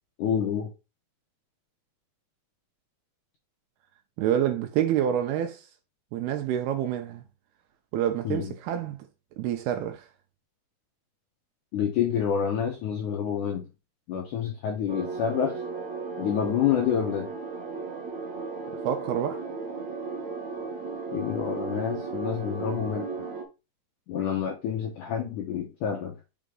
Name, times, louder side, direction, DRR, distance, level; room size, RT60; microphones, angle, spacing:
voice 1, 0.2-0.7 8.3-8.5 11.7-13.7 14.1-15.6 16.2-17.3 21.1-23.1 24.1-26.2, left 8 dB, 75° left, 1.8 m, -28 dB
voice 2, 4.2-5.6 6.1-7.2 7.9-9.0 9.4-10.1 18.8-19.4, right 10 dB, 80° right, 2.4 m, -27 dB
sound 1, 14.9-23.4, right 4 dB, 60° right, 2.0 m, -35 dB
5.7 x 5.1 x 3.7 m
omnidirectional pair, 4.9 m